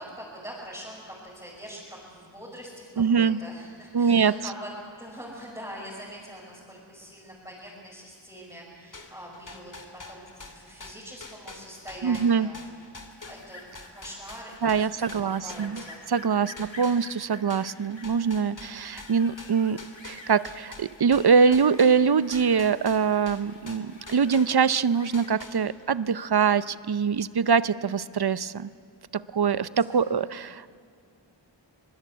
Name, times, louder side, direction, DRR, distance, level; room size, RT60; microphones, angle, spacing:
voice 1, 0.0-2.9 3.1-4.7 5.0-9.7 10.1-12.6 13.2-13.6 13.9-16.1 29.7-30.4, equal, 10° right, -7 dB, 5.8 m, -43 dB
voice 2, 3.0-3.4 3.9-4.3 12.0-12.5 14.6-15.8 16.1-19.8 20.0-28.7 29.1-30.7, right 6 dB, 55° right, 16 dB, 0.6 m, -23 dB
sound 1, 8.9-16.3 16.6-24.8 25.1-26.0, left 3 dB, 40° left, 2.7 m, -45 dB
sound 2, 13.1-25.3, left 2 dB, 75° left, 2.4 m, -49 dB
24.0 x 20.0 x 8.4 m, 2.3 s
wide cardioid pair, 55°, 46 cm